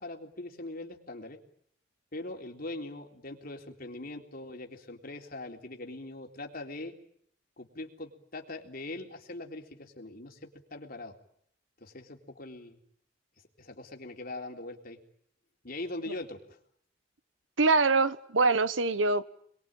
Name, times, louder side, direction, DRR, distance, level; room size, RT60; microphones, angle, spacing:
voice 1, 0.0-1.4 2.1-6.9 7.6-11.1 11.8-12.8 13.6-15.0 15.6-16.4, left 2 dB, 50° left, 2 dB, 3.7 m, -41 dB
voice 2, 17.6-19.2, right 3 dB, 85° right, 14 dB, 1.3 m, -24 dB
28.0 x 22.0 x 9.0 m, 0.67 s
head